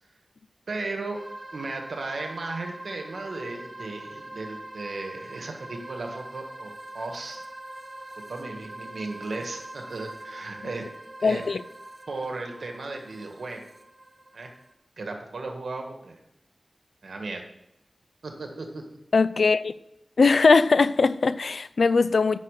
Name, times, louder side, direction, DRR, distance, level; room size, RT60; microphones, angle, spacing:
voice 1, 0.7-1.2 1.5-6.7 6.9-7.4 8.3-10.8 11.2-11.4 12.1-13.6 14.3-14.5 15.0-16.2 17.0-17.4 18.2-18.8, right 3 dB, 85° right, 1.7 m, -35 dB
sound 1, 1.1-14.7, right 1 dB, 45° right, 1.0 m, -43 dB
voice 2, 11.2-11.6 19.1-19.7 20.2-22.4, left 4 dB, 80° left, 0.4 m, -20 dB
8.4 x 6.2 x 6.6 m
cardioid pair, 50°, 0 cm